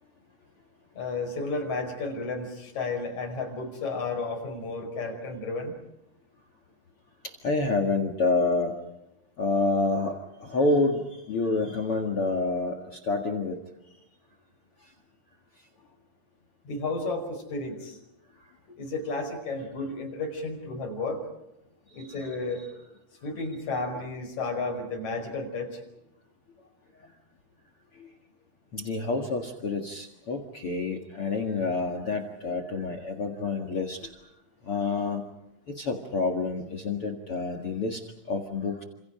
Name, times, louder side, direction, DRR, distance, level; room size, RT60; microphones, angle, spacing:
voice 1, 0.9-5.7 16.6-18.0 18.7-21.2 21.9-22.6 23.2-25.8, left 3 dB, 35° left, 3 dB, 6.2 m, -32 dB
voice 2, 7.2-8.7 9.4-13.6 22.0-22.3 28.7-34.1 34.7-35.2 35.7-38.0 38.3-38.8, left 3 dB, 70° left, 7 dB, 1.3 m, -28 dB
29.5 x 27.5 x 5.1 m, 0.86 s
omnidirectional pair, 5.8 m